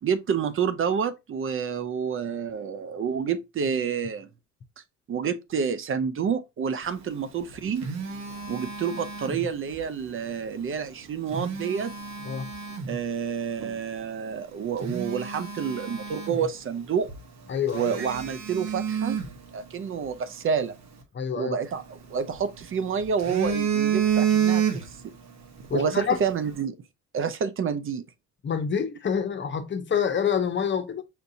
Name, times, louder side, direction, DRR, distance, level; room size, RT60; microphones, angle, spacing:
voice 1, 0.0-4.3 5.1-7.9 8.5-11.9 12.9-17.1 17.7-19.2 19.5-20.8 21.3-25.0 25.7-26.8 27.1-28.0, right 6 dB, 45° right, 0.5 m, -28 dB
Telephone, 7.3-9.8 11.1-13.0 13.6-13.8 14.3-14.4 14.8-16.8 17.1-17.2 17.7-20.1 21.6-22.6 23.0-25.1 25.4-25.7, right 7 dB, 65° right, 1.1 m, -29 dB
voice 2, 17.5-17.9 21.1-21.6 25.7-26.2 28.4-31.0, left 7 dB, 40° left, 0.7 m, -27 dB
5.7 x 2.6 x 2.6 m
cardioid pair, 90°, 30 cm